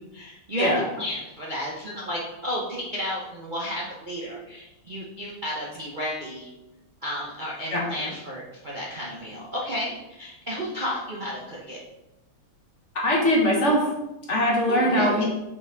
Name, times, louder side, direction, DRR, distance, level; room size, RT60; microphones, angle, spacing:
voice 1, 0.0-0.7 1.0-6.5 7.0-11.8 14.7-15.2, equal, 75° right, -5 dB, 0.4 m, -32 dB
voice 2, 13.0-13.9 14.3-15.2, equal, 40° left, -2 dB, 1.4 m, -21 dB
5.6 x 5.5 x 3.9 m, 0.95 s
omnidirectional pair, 2.4 m